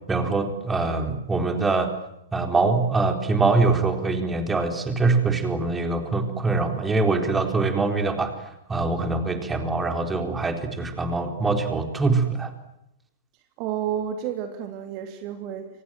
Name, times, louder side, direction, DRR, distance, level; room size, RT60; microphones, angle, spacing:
voice 1, 0.1-1.9 2.3-12.5, right 3 dB, 10° right, 6 dB, 4.1 m, -23 dB
voice 2, 13.6-15.7, right 9 dB, 40° right, 7 dB, 3.0 m, -30 dB
30.0 x 25.0 x 7.7 m, 0.86 s
figure-of-eight pair, 105°, 0 cm